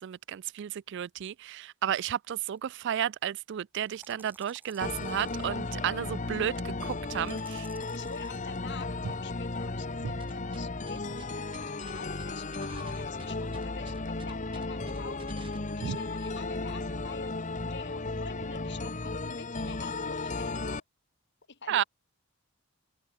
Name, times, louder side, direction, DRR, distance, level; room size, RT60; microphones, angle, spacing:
voice 1, 0.0-7.7 15.8-16.0 21.7-21.8, right 9 dB, 55° right, 0.3 m, -32 dB
sound 1, 2.5-2.6 3.8-5.5 7.2-8.4, right 2 dB, 10° right, 4.4 m, -56 dB
sound 2, 4.8-20.8, left 3 dB, 35° left, 1.2 m, -35 dB
voice 2, 5.3-5.8 7.5-7.6 7.9-17.3 17.6-20.8 21.5-21.8, left 4 dB, 55° left, 3.0 m, -47 dB
sound 3, 10.2-15.6, right 1 dB, 25° right, 3.3 m, -49 dB
head